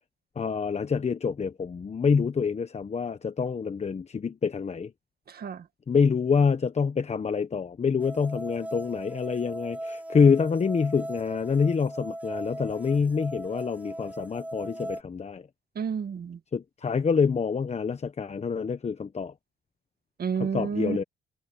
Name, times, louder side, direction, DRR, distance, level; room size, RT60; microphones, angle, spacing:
voice 1, 0.4-4.9 5.9-15.4 16.5-19.3 20.4-21.0, left 5 dB, 35° left, 1.1 m, -26 dB
voice 2, 5.3-5.7 15.8-16.4 20.2-21.0, right 7 dB, 50° right, 1.9 m, -30 dB
sound 1, 8.0-15.0, right 1 dB, 5° right, 1.4 m, -38 dB
cardioid pair, 90°, 20 cm